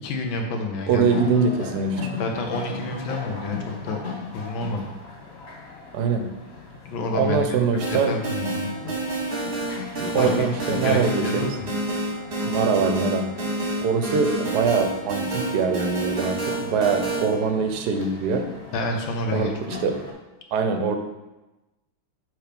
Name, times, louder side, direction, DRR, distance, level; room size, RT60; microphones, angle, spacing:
voice 1, 0.0-1.1 2.2-3.6 3.8-4.9 6.8-7.4 7.9-8.9 10.1-11.7 18.7-19.5, left 3 dB, 80° left, 3 dB, 1.6 m, -29 dB
voice 2, 0.9-2.1 5.9-6.3 7.1-8.2 10.0-11.6 12.4-13.3 13.8-18.5 19.3-19.9 20.5-21.0, right 5 dB, 70° right, 6 dB, 1.0 m, -23 dB
sound 1, 1.1-20.1, left 4 dB, 40° left, 1.2 m, -38 dB
sound 2, 7.8-17.3, right 2 dB, 35° right, 1.0 m, -28 dB
6.3 x 3.3 x 5.1 m, 1.0 s
omnidirectional pair, 2.2 m